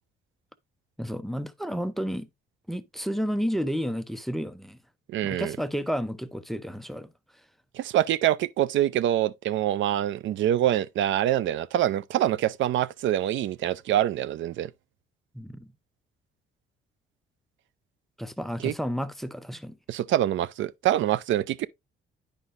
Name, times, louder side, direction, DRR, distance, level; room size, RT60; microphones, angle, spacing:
voice 1, 1.0-2.3 2.7-4.8 5.2-7.1 15.3-15.7 18.2-19.8, equal, ahead, 0.6 m, -31 dB
voice 2, 5.1-5.6 7.7-14.7 18.6-18.7 19.9-21.7, right 12 dB, 75° right, 0.5 m, -25 dB
9.9 x 5.1 x 2.5 m
cardioid pair, 90°, 20 cm